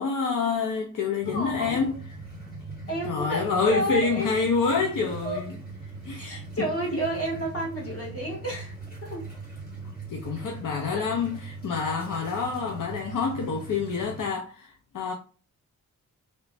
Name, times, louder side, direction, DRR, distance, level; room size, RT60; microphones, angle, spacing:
voice 1, 0.0-1.9 3.0-5.5 6.0-6.3 10.1-15.1, left 5 dB, 70° left, 0.6 m, -27 dB
sound 1, 1.2-14.3, right 3 dB, 30° left, 1.8 m, -40 dB
voice 2, 1.3-1.9 2.9-4.3 5.2-5.4 6.2-8.7 9.0-9.2 10.9-11.1, right 1 dB, 45° left, 1.5 m, -31 dB
3.1 x 3.1 x 2.5 m
wide cardioid pair, 155°, 33 cm